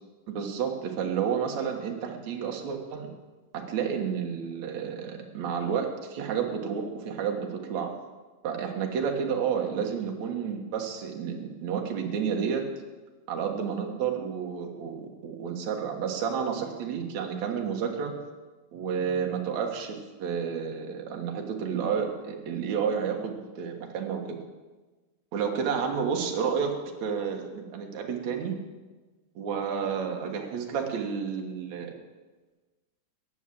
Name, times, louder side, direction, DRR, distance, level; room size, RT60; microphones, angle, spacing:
voice 1, 0.3-3.1 3.5-7.9 8.4-12.6 13.3-18.2 18.7-24.4 25.3-26.7 27.0-28.5 29.4-31.9, right 7 dB, 70° right, 2 dB, 2.7 m, -30 dB
15.5 x 9.8 x 7.5 m, 1.2 s
omnidirectional pair, 3.5 m